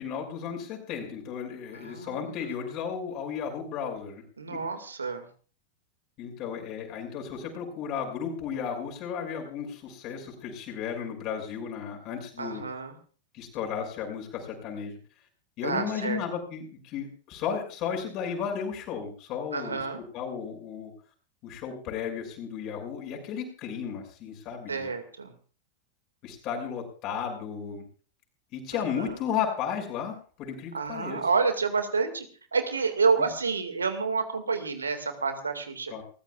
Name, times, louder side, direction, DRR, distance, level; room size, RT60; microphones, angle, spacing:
voice 1, 0.0-4.2 4.5-4.6 6.2-12.6 13.3-15.0 15.6-19.8 20.1-20.9 21.4-24.9 26.2-27.8 28.5-31.2 33.2-33.3 35.9-36.0, left 7 dB, 40° left, 1 dB, 6.5 m, -34 dB
voice 2, 1.7-2.3 4.4-5.2 12.4-12.9 15.6-16.2 19.5-20.0 24.7-25.3 29.0-29.1 30.7-32.3 32.5-35.9, right 5 dB, 75° right, 8 dB, 2.1 m, -29 dB
29.0 x 15.0 x 2.5 m, 0.40 s
figure-of-eight pair, 90°, 0 cm